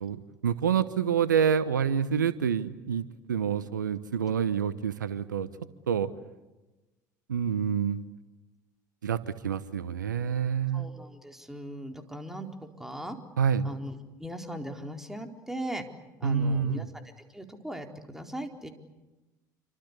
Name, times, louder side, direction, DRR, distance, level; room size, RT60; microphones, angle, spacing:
voice 1, 0.0-5.5 5.9-6.1 7.3-8.0 9.0-10.8 13.4-13.7 16.2-16.9, right 7 dB, 85° right, 15 dB, 1.1 m, -27 dB
voice 2, 10.7-13.2 13.6-13.9 14.2-15.8 16.2-16.8 17.3-18.7, right 1 dB, 5° right, 4 dB, 4.3 m, -38 dB
28.0 x 25.0 x 8.2 m, 1.1 s
hypercardioid pair, 65°, 10 cm